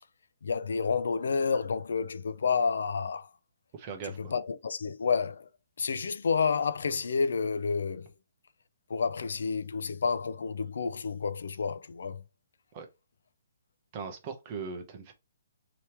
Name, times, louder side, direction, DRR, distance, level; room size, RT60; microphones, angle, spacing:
voice 1, 0.4-3.3 4.0-5.5 5.8-8.1 8.9-12.2, left 5 dB, 70° left, 0.5 m, -30 dB
voice 2, 3.7-4.3 12.7-12.9 13.9-15.1, right 5 dB, 20° right, 0.8 m, -39 dB
3.4 x 2.9 x 4.4 m
hypercardioid pair, 175°, 0 cm